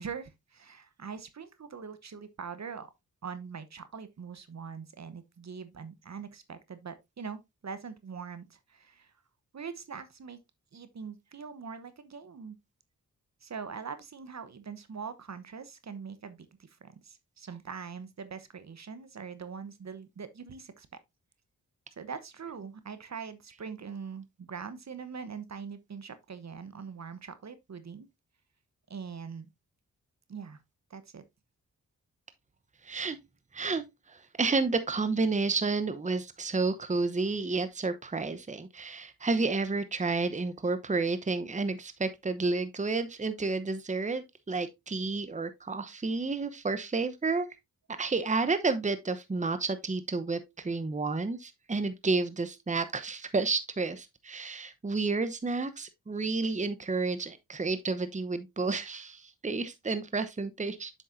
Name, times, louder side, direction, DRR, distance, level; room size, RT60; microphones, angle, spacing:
voice 1, 0.0-2.9 3.2-9.1 9.5-10.4 10.7-12.6 13.4-20.9 22.0-28.1 28.9-29.5 30.3-30.6 30.9-31.2, right 6 dB, 50° right, 1.0 m, -42 dB
voice 2, 32.8-33.2 33.5-47.5 47.9-60.9, right 3 dB, 20° right, 0.9 m, -31 dB
7.5 x 6.5 x 2.6 m
cardioid pair, 45°, 35 cm